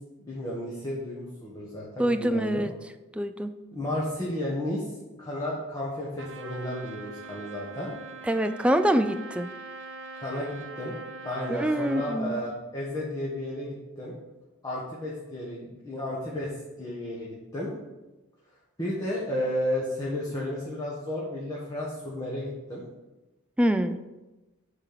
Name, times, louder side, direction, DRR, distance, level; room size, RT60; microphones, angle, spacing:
voice 1, 0.3-2.6 3.7-4.9 5.2-7.9 10.1-10.9 11.2-14.1 14.6-16.5 16.8-17.7 18.8-22.8, left 1 dB, 20° left, -6 dB, 1.5 m, -33 dB
voice 2, 2.0-2.7 3.2-3.6 8.3-9.5 11.5-12.3 23.6-24.0, equal, 5° right, 8 dB, 0.3 m, -25 dB
Trumpet, 6.2-12.2, right 3 dB, 60° right, 0.8 m, -42 dB
8.7 x 4.4 x 6.9 m, 1.1 s
head